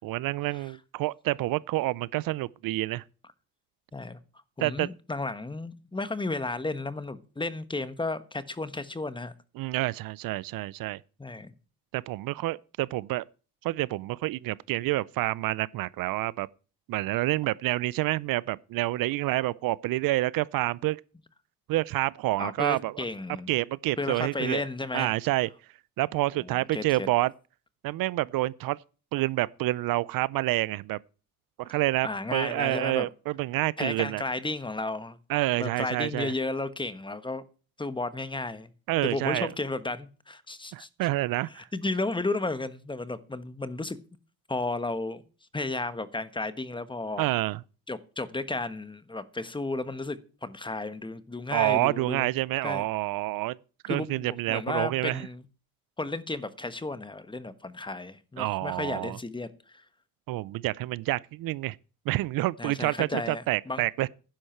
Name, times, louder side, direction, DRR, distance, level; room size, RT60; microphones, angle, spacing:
voice 1, 0.0-3.0 4.6-4.9 9.6-11.0 11.9-13.2 13.6-16.5 16.9-21.0 21.7-23.0 23.5-24.6 24.9-25.5 26.0-27.3 27.8-28.8 29.1-31.0 31.6-34.2 35.3-36.3 38.9-39.5 40.7-41.7 47.2-47.6 51.5-53.6 53.8-55.3 58.4-59.2 60.3-61.8 62.1-64.1, right 18 dB, 70° right, 0.6 m, -28 dB
voice 2, 4.6-9.3 11.2-11.5 22.4-23.5 24.0-25.1 26.4-27.1 32.0-33.1 33.8-35.2 35.6-37.4 37.8-38.7 39.0-40.9 41.5-44.0 44.5-45.2 45.5-47.3 47.9-52.3 52.6-52.8 53.9-55.4 56.0-59.8 62.6-63.8, left 2 dB, 15° left, 1.3 m, -33 dB
11.0 x 10.5 x 4.5 m
cardioid pair, 90°, 36 cm